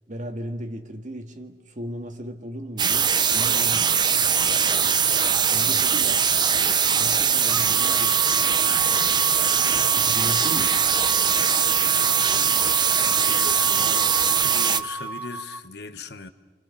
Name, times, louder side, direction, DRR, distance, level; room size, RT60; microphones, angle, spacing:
voice 1, 0.1-4.0 5.5-6.3 6.9-8.2 8.9-9.5 9.8-10.8, equal, 45° right, 1.9 m, -36 dB
sound 1, 2.8-14.8, right 7 dB, 25° right, 0.7 m, -21 dB
sound 2, 7.5-15.6, right 2 dB, 10° right, 1.1 m, -34 dB
voice 2, 13.0-16.3, left 4 dB, 65° left, 1.2 m, -38 dB
29.5 x 25.0 x 7.0 m
head